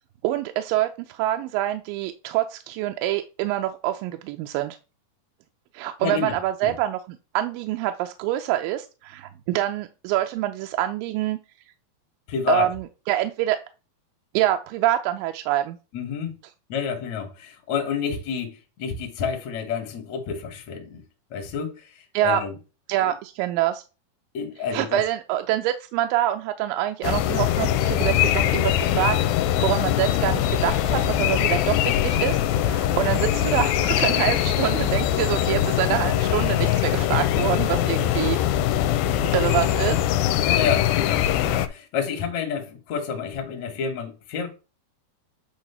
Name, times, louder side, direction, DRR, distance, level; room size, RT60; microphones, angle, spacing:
voice 1, 0.2-4.8 5.7-11.4 12.5-13.6 14.3-15.8 22.1-22.4 22.9-23.8 24.7-29.2 29.6-38.6 39.2-40.0, right 13 dB, 80° right, 2.1 m, -26 dB
voice 2, 6.0-6.3 6.6-6.7 12.3-12.7 15.9-16.3 16.7-21.0 21.3-22.6 23.0-23.1 24.3-25.0 40.4-44.5, left 7 dB, 60° left, 2.2 m, -29 dB
sound 1, 27.0-41.7, left 11 dB, 80° left, 2.3 m, -22 dB
8.7 x 3.0 x 5.5 m
omnidirectional pair, 4.3 m